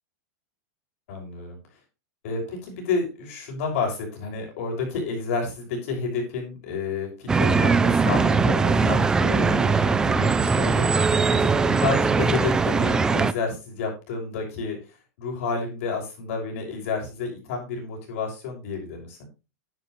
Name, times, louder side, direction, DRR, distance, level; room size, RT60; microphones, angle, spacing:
voice 1, 1.1-1.6 2.2-19.2, left 4 dB, 55° left, 2 dB, 6.2 m, -30 dB
sound 1, 7.3-13.3, right 4 dB, 10° right, 0.4 m, -21 dB
11.0 x 10.5 x 3.2 m, 0.29 s
supercardioid pair, 170°, 9 cm